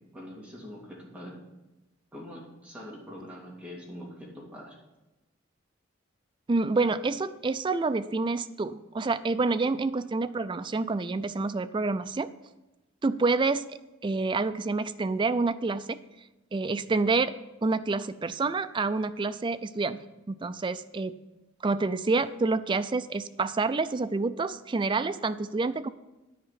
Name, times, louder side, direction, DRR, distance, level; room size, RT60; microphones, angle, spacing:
voice 1, 0.1-1.4 2.1-4.8, equal, 5° right, -4 dB, 2.3 m, -43 dB
voice 2, 6.5-12.3 13.0-16.0 16.5-17.3 17.6-20.0 20.3-21.1 21.6-25.9, right 3 dB, 25° right, 12 dB, 0.3 m, -28 dB
10.0 x 4.9 x 7.5 m, 1.0 s
head